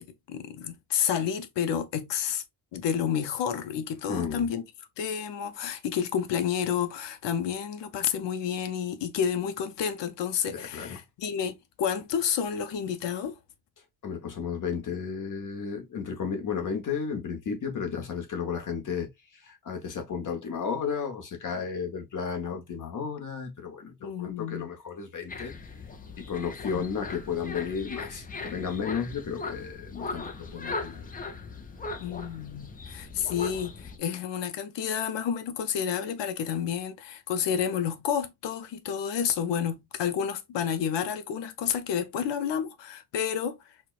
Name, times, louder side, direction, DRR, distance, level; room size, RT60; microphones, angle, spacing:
voice 1, 0.0-2.4 2.7-4.6 5.0-13.4 24.0-24.7 26.7-26.9 32.0-43.6, left 8 dB, 85° left, 0.6 m, -30 dB
voice 2, 4.1-4.5 10.5-11.0 14.0-25.5 26.2-31.1, left 6 dB, 45° left, 0.9 m, -33 dB
sound 1, 25.3-34.0, left 3 dB, 20° left, 0.4 m, -39 dB
4.3 x 2.1 x 2.3 m
wide cardioid pair, 150°, 41 cm